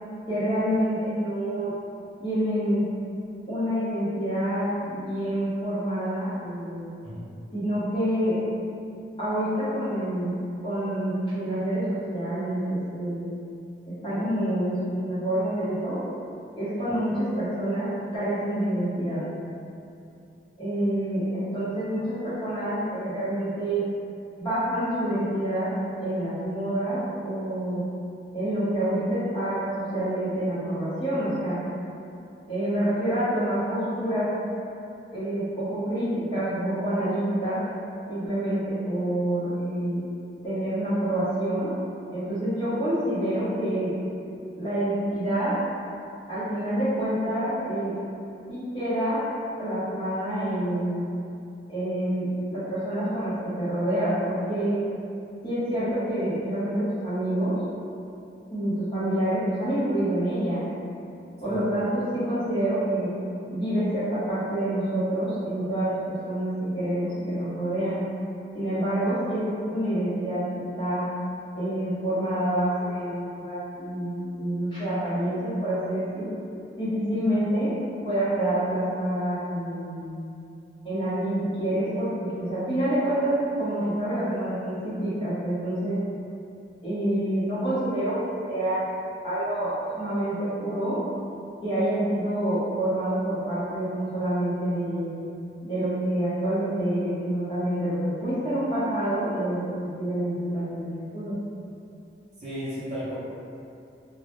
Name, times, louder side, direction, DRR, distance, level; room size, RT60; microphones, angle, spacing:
voice 1, 0.3-1.7 2.2-2.8 3.5-6.9 7.5-8.4 9.2-13.3 14.0-16.0 16.6-19.2 20.6-23.8 24.4-25.7 26.0-27.8 28.3-31.6 32.5-34.3 35.1-37.6 38.1-40.0 40.4-41.7 42.1-43.9 44.6-45.6 46.3-48.0 48.5-49.2 49.6-51.1 51.7-54.8 55.4-57.6 58.5-60.7 61.4-63.1 63.5-68.0 68.5-70.5 70.8-71.1 71.6-76.3 76.8-77.7 78.0-80.1 80.8-86.0 86.8-88.8 89.2-91.0 91.6-95.1 95.6-101.4, right 1 dB, 30° left, -12 dB, 0.7 m, -27 dB
voice 2, 102.4-103.1, equal, 35° right, -10 dB, 0.5 m, -34 dB
2.0 x 2.0 x 2.9 m, 2.6 s
head